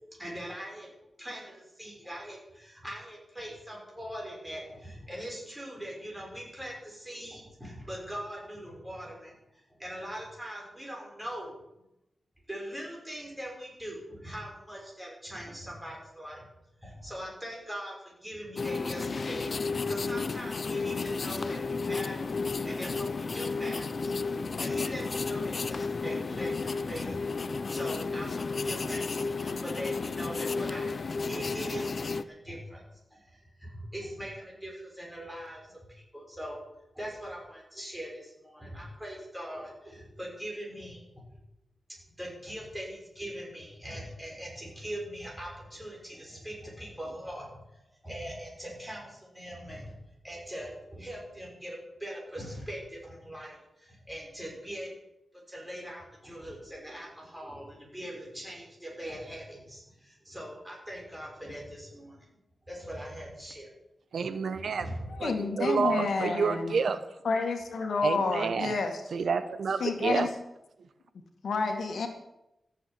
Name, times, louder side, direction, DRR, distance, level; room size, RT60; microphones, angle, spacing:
voice 1, 0.1-0.9 1.2-11.6 12.5-16.4 16.8-24.1 24.6-27.2 27.7-35.8 36.1-36.6 36.9-41.0 42.2-49.9 50.2-54.9 55.5-62.2 62.7-63.7 64.8-65.1 65.5-65.6, equal, 10° right, -2 dB, 6.1 m, -41 dB
sound 1, 18.6-32.2, left 4 dB, 45° left, 0.6 m, -32 dB
voice 2, 64.1-64.9 65.2-67.0 68.0-68.7 69.1-70.3, right 5 dB, 70° right, 11 dB, 0.9 m, -29 dB
voice 3, 65.1-66.7 67.2-69.0 69.8-70.3 71.4-72.1, left 4 dB, 75° left, 5 dB, 2.1 m, -29 dB
14.0 x 8.0 x 9.0 m, 0.88 s
wide cardioid pair, 130°, 0 cm